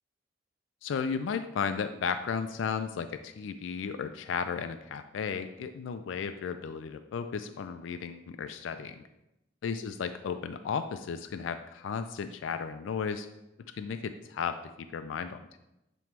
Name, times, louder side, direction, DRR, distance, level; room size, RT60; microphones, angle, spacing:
voice 1, 0.8-9.0 9.6-13.3 13.7-15.6, left 6 dB, 85° left, 9 dB, 0.3 m, -34 dB
7.3 x 3.0 x 4.5 m, 0.90 s
head